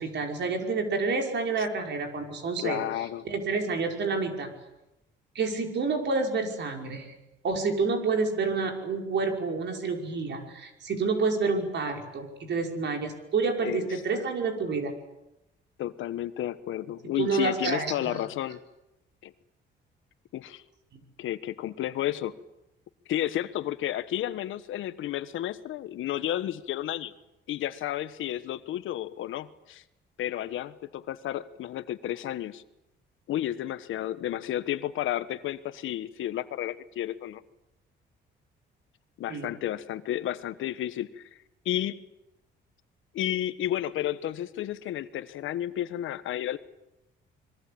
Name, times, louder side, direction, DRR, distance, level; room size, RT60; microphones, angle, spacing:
voice 1, 0.0-2.8 3.2-4.5 5.3-7.1 7.4-14.9 17.0-18.2 39.3-39.5, right 4 dB, 60° right, 3 dB, 5.7 m, -29 dB
voice 2, 2.6-3.3 13.6-14.2 15.8-18.6 19.2-19.3 20.3-20.6 21.2-22.4 23.1-27.1 27.5-29.8 30.2-32.6 33.3-37.4 39.2-41.3 41.6-42.0 43.1-46.6, left 12 dB, 80° left, 13 dB, 1.3 m, -32 dB
26.0 x 22.5 x 8.7 m, 0.90 s
cardioid pair, 90°, 20 cm